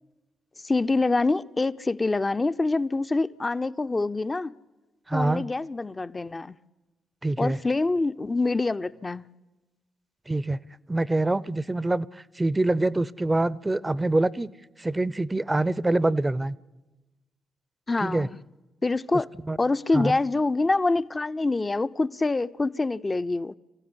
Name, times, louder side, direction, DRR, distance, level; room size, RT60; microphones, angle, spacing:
voice 1, 0.6-4.5 5.1-6.6 7.4-9.3 17.9-18.4 18.8-19.3 19.6-23.6, left 3 dB, 30° left, 0.8 m, -25 dB
voice 2, 5.1-5.4 7.2-7.6 10.3-10.6 10.9-12.1 12.4-14.5 14.8-16.5 18.0-18.3 19.5-19.6 19.9-20.1, right 2 dB, 20° right, 0.8 m, -25 dB
25.5 x 15.0 x 9.9 m
hypercardioid pair, 45°, 0 cm